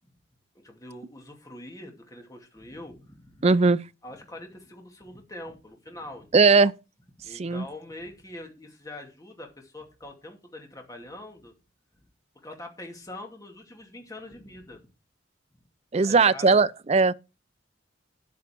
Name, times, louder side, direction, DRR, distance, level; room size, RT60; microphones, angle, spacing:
voice 1, 0.6-3.5 4.0-6.6 7.2-11.5 12.4-14.9 16.0-16.6, left 1 dB, 15° left, 2.4 m, -43 dB
voice 2, 3.4-3.8 6.3-6.7 7.3-7.7 15.9-17.1, right 4 dB, 30° right, 0.5 m, -19 dB
10.0 x 8.4 x 4.5 m
head